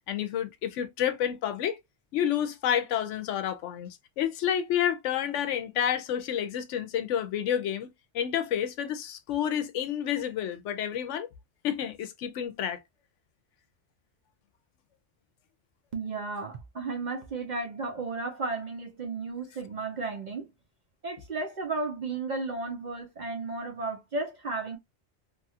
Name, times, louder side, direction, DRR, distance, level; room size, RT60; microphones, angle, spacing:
voice 1, 0.1-1.8 2.1-11.3 11.6-12.8, left 9 dB, 85° left, 0.9 m, -29 dB
voice 2, 15.9-20.5 21.0-24.8, right 3 dB, 50° right, 0.6 m, -34 dB
3.0 x 2.3 x 2.6 m
omnidirectional pair, 1.2 m